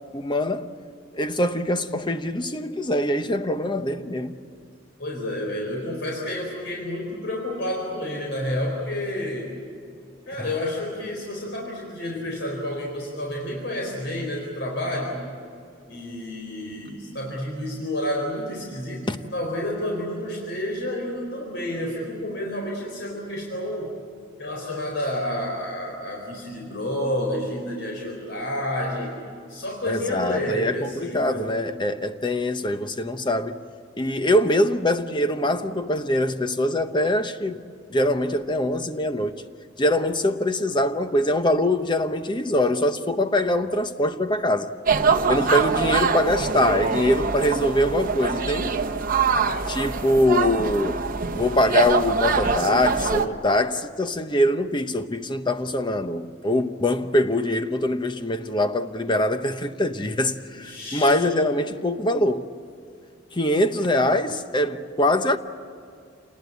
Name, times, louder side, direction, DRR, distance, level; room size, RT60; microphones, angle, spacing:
voice 1, 0.1-0.7 1.1-4.3 19.1-19.2 29.9-33.6 34.0-37.6 37.9-39.4 39.8-44.7 45.3-48.8 49.7-51.0 51.3-62.5 63.3-65.4, left 1 dB, 25° left, 0.9 m, -23 dB
voice 2, 5.0-9.5 10.3-15.2 15.9-23.9 24.4-29.1 29.5-31.4 45.4-45.7 60.5-61.2, left 1 dB, 60° left, 4.4 m, -30 dB
sound 1, 44.9-53.3, right 5 dB, 45° right, 1.1 m, -24 dB
28.0 x 20.0 x 8.4 m
head